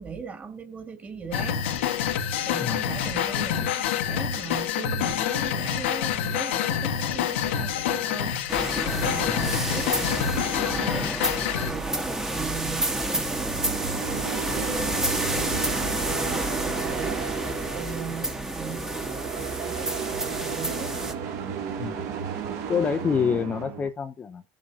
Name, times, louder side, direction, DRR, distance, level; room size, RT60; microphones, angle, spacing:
voice 1, 0.0-1.6 2.4-8.4 8.6-11.3 11.7-20.9, right 5 dB, 25° right, 2.5 m, -39 dB
sound 1, 1.3-11.7, left 9 dB, 85° left, 1.5 m, -27 dB
sound 2, 8.5-21.1, right 1 dB, 10° right, 1.4 m, -29 dB
voice 2, 9.2-9.5 11.0-11.2 21.8-22.1 22.7-24.4, left 6 dB, 25° left, 0.8 m, -27 dB
sound 3, 12.8-23.9, right 7 dB, 55° right, 2.6 m, -33 dB
18.0 x 7.5 x 2.8 m
supercardioid pair, 110°, 6 cm